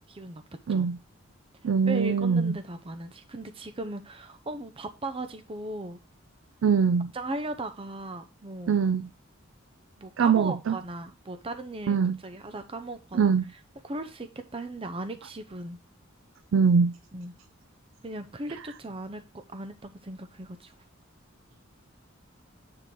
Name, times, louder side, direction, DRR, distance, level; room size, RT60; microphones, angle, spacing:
voice 1, 0.1-0.4 0.7-0.9 1.9-6.0 7.1-8.8 10.0-13.3 13.8-14.3 14.5-15.8 17.1-17.3 18.0-20.7, right 2 dB, 30° right, 0.6 m, -37 dB
voice 2, 1.6-2.5 6.6-7.1 8.7-9.1 10.2-10.8 11.9-12.1 13.1-13.5 16.5-16.9, right 5 dB, 80° right, 0.4 m, -22 dB
9.2 x 3.8 x 4.6 m
head